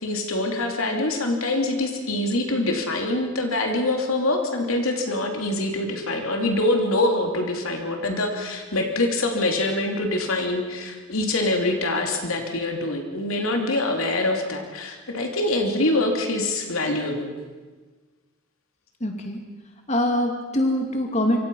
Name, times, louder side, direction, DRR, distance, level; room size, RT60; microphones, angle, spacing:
voice 1, 0.0-17.3, left 2 dB, 80° left, 3 dB, 3.2 m, -24 dB
voice 2, 19.0-19.4 19.9-21.4, left 1 dB, 30° left, 3 dB, 2.5 m, -23 dB
26.5 x 25.5 x 5.6 m, 1.4 s
head